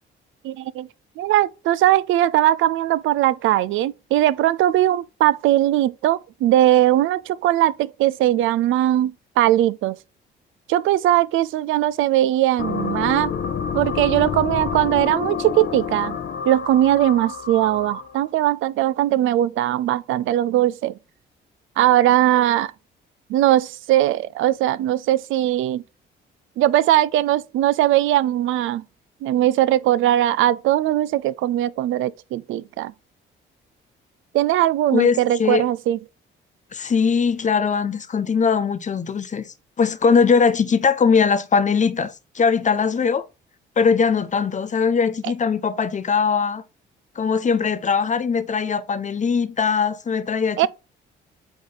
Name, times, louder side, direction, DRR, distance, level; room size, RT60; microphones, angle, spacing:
voice 1, 0.4-0.9 1.2-10.0 10.7-13.3 13.7-16.2 16.5-20.9 21.8-22.7 23.3-25.8 26.6-28.8 29.2-32.9 34.3-36.0 45.2-45.3 50.6-50.7, right 13 dB, 85° right, 0.5 m, -19 dB
sound 1, 12.6-18.2, left 7 dB, 60° left, 1.3 m, -28 dB
voice 2, 34.9-35.6 36.7-43.2 43.8-46.6 47.1-50.7, left 5 dB, 40° left, 0.9 m, -20 dB
8.5 x 3.1 x 4.0 m
cardioid pair, 90°, 20 cm